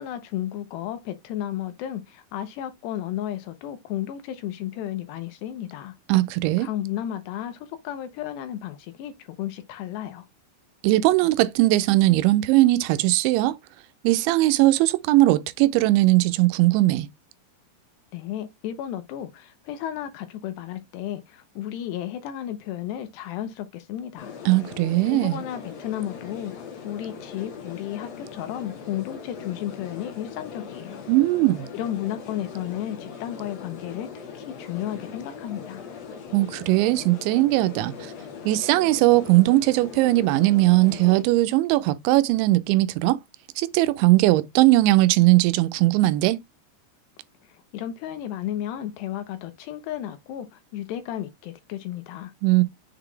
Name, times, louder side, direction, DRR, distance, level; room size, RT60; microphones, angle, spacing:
voice 1, 0.0-6.0 6.6-10.3 18.1-24.3 25.1-31.0 31.7-34.1 34.3-35.8 47.5-52.3, left 11 dB, 75° left, 2.8 m, -33 dB
voice 2, 6.1-6.7 10.8-13.6 14.0-17.1 24.5-25.4 31.1-31.7 36.3-38.1 38.5-43.2 43.6-46.4 52.4-52.6, right 18 dB, 85° right, 3.0 m, -19 dB
sound 1, 24.2-41.2, left 6 dB, 55° left, 2.0 m, -40 dB
7.3 x 4.0 x 3.3 m
omnidirectional pair, 5.2 m